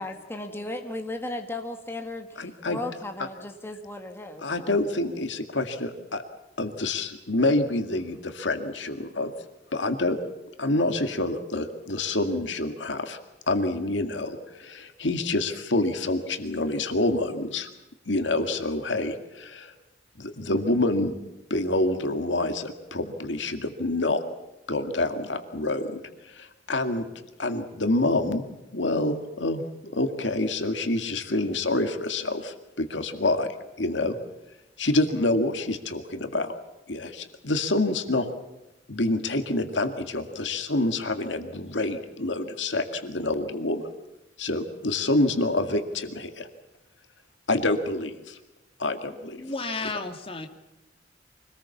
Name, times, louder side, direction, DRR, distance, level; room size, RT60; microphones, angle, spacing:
voice 1, 0.0-4.8, left 2 dB, 15° left, 4 dB, 1.8 m, -36 dB
voice 2, 2.4-2.8 4.4-6.2 6.6-9.3 9.7-10.2 10.6-13.2 13.5-17.7 18.1-19.7 20.2-21.2 21.5-24.2 24.7-26.0 26.3-27.1 27.4-28.4 28.7-34.2 34.8-36.5 36.9-38.3 38.9-43.9 44.4-46.5 47.5-48.4 48.8-49.4, left 2 dB, 75° left, 7 dB, 2.1 m, -27 dB
voice 3, 49.1-50.5, left 3 dB, 30° left, 5 dB, 2.2 m, -33 dB
25.0 x 19.5 x 7.2 m, 0.99 s
head